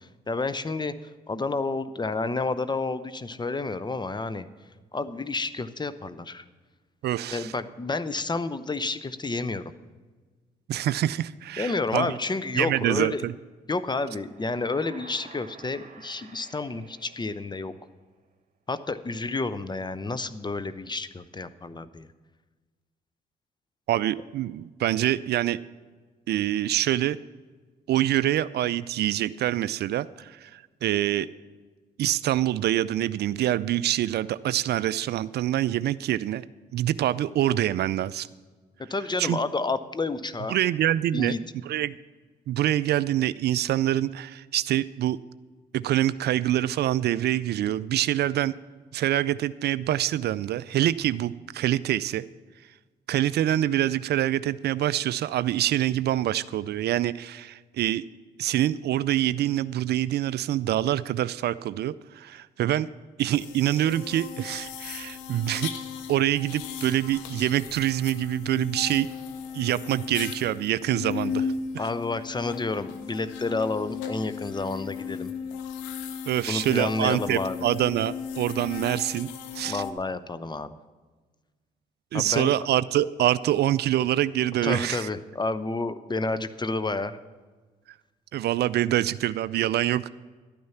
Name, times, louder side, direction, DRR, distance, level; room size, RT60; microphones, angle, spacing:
voice 1, 0.0-4.5 4.9-6.4 7.3-9.7 11.6-13.2 13.7-17.7 18.7-22.1 38.9-40.6 41.1-41.4 71.8-75.3 76.5-77.6 79.7-80.8 82.1-82.5 84.6-87.2, left 3 dB, 25° left, 14 dB, 0.8 m, -30 dB
voice 2, 7.0-7.5 10.7-12.1 12.6-13.3 23.9-25.6 26.3-27.2 27.9-31.3 32.0-36.4 36.7-38.3 39.2-39.4 40.5-41.4 41.6-41.9 42.5-45.2 45.7-48.5 48.9-52.2 53.1-58.0 58.4-62.9 63.2-65.7 66.1-69.1 69.5-71.5 71.7-71.8 76.3-79.3 79.5-79.8 82.1-85.1 88.3-90.1, right 13 dB, 60° right, 17 dB, 0.4 m, -25 dB
sound 1, 14.2-18.1, right 5 dB, 45° right, 1.5 m, -50 dB
sound 2, 63.3-79.9, left 7 dB, 85° left, 0.8 m, -36 dB
12.0 x 9.4 x 5.7 m, 1.3 s
hypercardioid pair, 55°, 19 cm